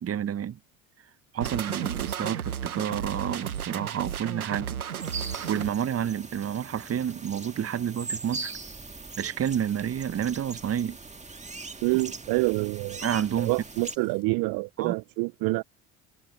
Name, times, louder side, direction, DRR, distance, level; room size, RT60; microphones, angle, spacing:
voice 1, 0.0-0.6 1.3-4.8 5.5-8.5 9.2-11.0 13.0-13.5 14.8-14.9, right 9 dB, 35° right, 1.3 m, -29 dB
sound 1, 1.4-5.7, right 8 dB, 90° right, 1.2 m, -33 dB
sound 2, 5.0-14.0, right 3 dB, 15° right, 2.1 m, -40 dB
sound 3, 8.8-14.2, left 8 dB, 85° left, 6.8 m, -61 dB
voice 2, 11.8-13.0 13.4-15.6, right 27 dB, 55° right, 0.7 m, -27 dB
hypercardioid pair, 60°, 42 cm